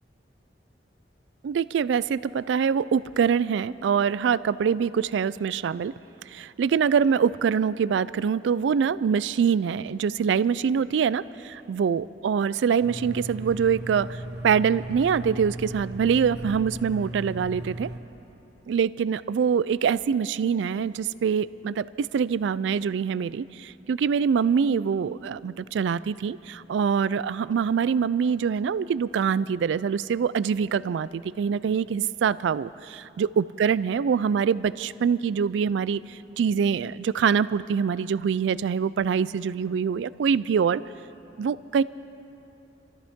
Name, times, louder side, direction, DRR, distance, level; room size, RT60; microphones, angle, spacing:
voice 1, 1.4-5.9 6.3-17.9 18.7-40.8 41.4-41.8, right 7 dB, 80° right, 18 dB, 0.3 m, -24 dB
sound 1, 12.8-18.0, right 1 dB, 65° right, 1.4 m, -37 dB
26.0 x 14.0 x 3.6 m, 2.9 s
head